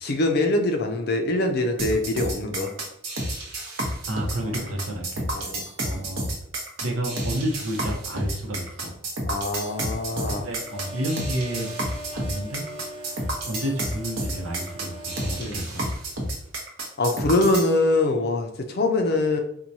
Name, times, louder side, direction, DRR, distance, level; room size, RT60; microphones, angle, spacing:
voice 1, 0.0-2.7 4.4-4.6 5.3-5.6 9.3-10.4 15.4-15.7 17.0-19.4, left 2 dB, 50° left, 5 dB, 0.5 m, -23 dB
sound 1, 1.8-17.7, right 1 dB, 65° right, 0.9 m, -30 dB
voice 2, 4.1-5.6 5.8-6.4 6.8-8.9 10.1-11.7 12.1-13.1 13.4-15.8, right 1 dB, 90° right, 1 dB, 0.8 m, -31 dB
sound 2, 9.5-15.5, equal, 25° right, 0.5 m, -41 dB
4.5 x 2.2 x 2.7 m, 0.73 s
head